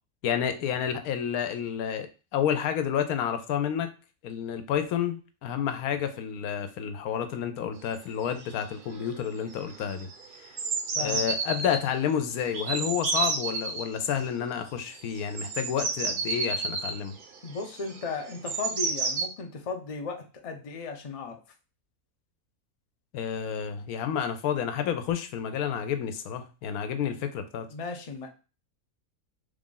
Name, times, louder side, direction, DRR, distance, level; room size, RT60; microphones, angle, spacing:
voice 1, 0.2-3.9 4.2-10.1 10.4-10.5 11.0-17.2 23.1-27.7, left 8 dB, 90° left, 8 dB, 1.1 m, -30 dB
sound 1, 8.0-8.1 8.2-8.6 8.9-9.3 9.5-11.8 12.5-13.9 14.9-19.3, right 4 dB, 60° right, 0.5 m, -31 dB
voice 2, 11.0-11.3 17.4-21.4 27.1-27.2 27.7-28.3, left 4 dB, 65° left, 4 dB, 0.3 m, -36 dB
3.3 x 2.5 x 3.8 m, 0.33 s
omnidirectional pair, 1.5 m